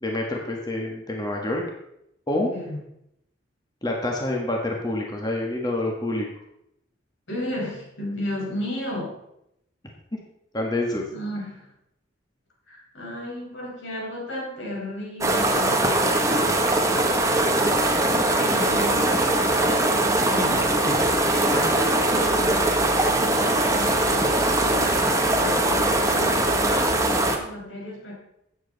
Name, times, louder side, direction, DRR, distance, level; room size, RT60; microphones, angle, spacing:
voice 1, 0.0-1.6 2.3-2.5 3.8-6.3 10.5-11.0 20.5-20.6 20.9-21.0 21.5-21.7, left 1 dB, 20° left, 0 dB, 1.4 m, -27 dB
voice 2, 7.3-9.2 11.1-11.7 12.7-15.9 17.3-20.7 21.3-28.1, left 1 dB, 85° left, -2 dB, 4.9 m, -34 dB
sound 1, 15.2-27.4, right 1 dB, 15° right, 1.1 m, -21 dB
12.5 x 8.8 x 4.0 m, 0.79 s
head